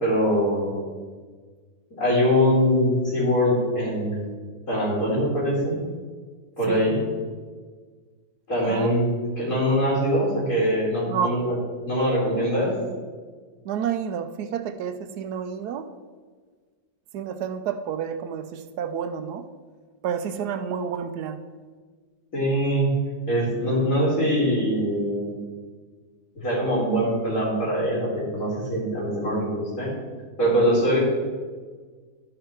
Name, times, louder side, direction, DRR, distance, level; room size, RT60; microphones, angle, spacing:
voice 1, 0.0-0.9 2.0-4.2 4.7-5.8 6.6-7.0 8.5-9.1 9.4-11.5 11.9-12.7 22.3-22.9 23.3-25.4 26.4-29.9 30.4-31.0, equal, 55° left, -7 dB, 2.9 m, -23 dB
voice 2, 11.1-11.4 13.6-15.9 17.1-19.5 20.0-21.4, right 8 dB, 80° right, 10 dB, 1.2 m, -29 dB
12.0 x 5.2 x 4.4 m, 1.5 s
omnidirectional pair, 1.7 m